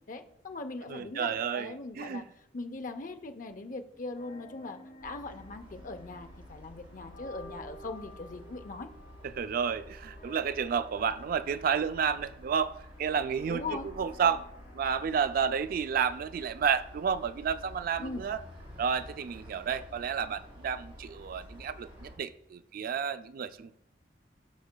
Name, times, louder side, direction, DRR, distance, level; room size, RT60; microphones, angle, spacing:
voice 1, 0.1-2.3 2.5-8.9 13.5-13.9 18.0-18.3, left 3 dB, 50° left, 0.6 m, -40 dB
voice 2, 0.9-2.3 9.3-14.5 14.7-18.4 18.8-23.7, right 7 dB, 55° right, 0.3 m, -31 dB
sound 1, 4.0-16.9, left 1 dB, 70° left, 1.7 m, -54 dB
sound 2, 5.0-22.2, equal, 30° right, 2.6 m, -50 dB
11.5 x 6.3 x 2.2 m
head